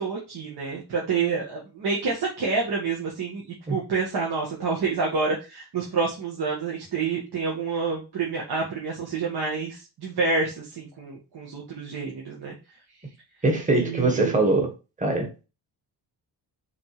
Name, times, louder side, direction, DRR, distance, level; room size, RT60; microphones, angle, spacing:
voice 1, 0.0-12.5 13.7-14.4, right 4 dB, 70° right, -3 dB, 2.0 m, -28 dB
voice 2, 13.4-14.7 15.0-15.4, right 2 dB, 20° right, 3 dB, 1.6 m, -22 dB
5.9 x 3.8 x 5.0 m, 0.30 s
wide cardioid pair, 165°, 40 cm